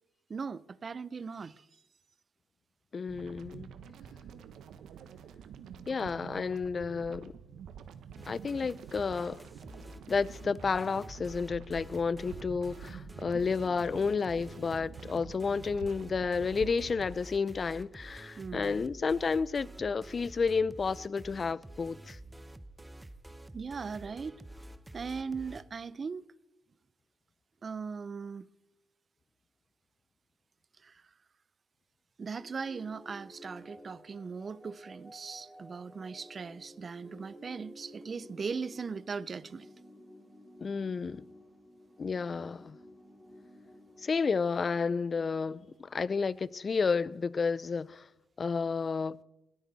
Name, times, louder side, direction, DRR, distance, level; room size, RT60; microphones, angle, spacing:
voice 1, 0.3-1.7 18.4-18.8 23.5-24.4 24.9-26.3 27.6-28.5 30.8-31.0 32.2-39.7, right 5 dB, 40° right, 0.5 m, -39 dB
voice 2, 2.9-3.7 5.9-7.3 8.3-9.4 10.1-22.2 40.6-41.2 42.0-42.8 44.0-48.1 48.4-49.2, left 5 dB, 35° left, 0.4 m, -31 dB
sound 1, 3.1-17.1, right 8 dB, 75° right, 1.0 m, -48 dB
sound 2, 8.2-25.6, right 1 dB, 10° right, 0.8 m, -49 dB
sound 3, 32.4-46.1, equal, 5° left, 2.7 m, -54 dB
21.0 x 13.5 x 4.1 m
cardioid pair, 90°, 0 cm